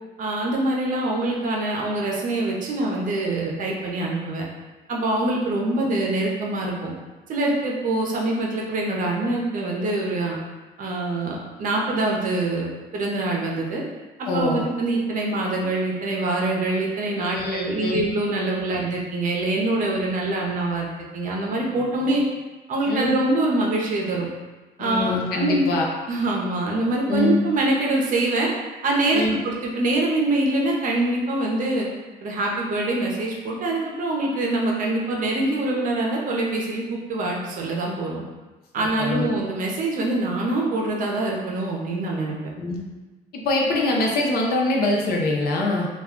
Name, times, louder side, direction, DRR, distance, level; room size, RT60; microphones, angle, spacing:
voice 1, 0.2-4.4 4.9-6.9 7.3-10.4 10.8-13.8 14.2-20.9 21.1-22.2 22.7-24.3 24.8-25.7 26.1-28.5 28.8-31.9 32.2-38.2 38.7-42.4, right 2 dB, 50° right, -1 dB, 0.6 m, -24 dB
voice 2, 14.2-14.6 17.3-18.0 22.9-23.2 24.8-25.9 27.1-27.4 29.1-29.4 38.8-39.3 42.6-42.8 43.3-45.9, left 2 dB, 65° left, -1 dB, 0.6 m, -24 dB
2.3 x 2.2 x 3.6 m, 1.2 s
cardioid pair, 110°, 17 cm